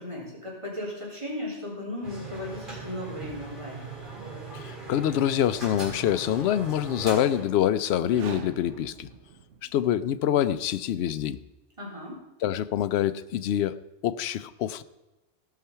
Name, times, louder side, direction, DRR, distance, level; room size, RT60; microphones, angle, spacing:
voice 1, 0.0-3.9 11.8-12.2, left 1 dB, 25° right, -5 dB, 3.9 m, -36 dB
sound 1, 2.0-7.4, right 3 dB, 45° right, 4.2 m, -40 dB
voice 2, 4.5-9.1 9.6-11.4 12.4-13.8 14.0-14.8, left 11 dB, 70° left, 13 dB, 0.8 m, -26 dB
sound 2, 7.9-10.0, right 6 dB, 90° right, 1.2 m, -44 dB
16.5 x 5.8 x 5.6 m, 1.0 s
omnidirectional pair, 1.2 m